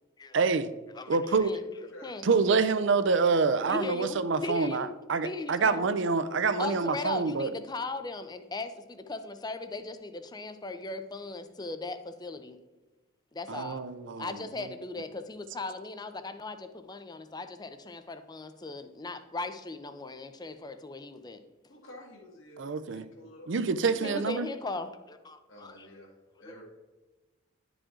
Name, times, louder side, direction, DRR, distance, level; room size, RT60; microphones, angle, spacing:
voice 1, 0.3-0.7 1.1-1.5 2.2-7.5 13.5-14.3 22.6-23.1 23.5-24.5, right 4 dB, 60° right, 0.5 m, -26 dB
voice 2, 0.9-2.3 3.7-4.9 5.2-5.9 6.6-12.6 13.3-13.8 14.2-21.4 24.0-25.9 26.4-26.6, left 3 dB, 20° left, 0.5 m, -38 dB
voice 3, 1.5-2.1 21.7-23.5 25.5-26.1 26.4-26.6, left 1 dB, 70° left, 1.7 m, -50 dB
11.0 x 4.9 x 3.8 m
head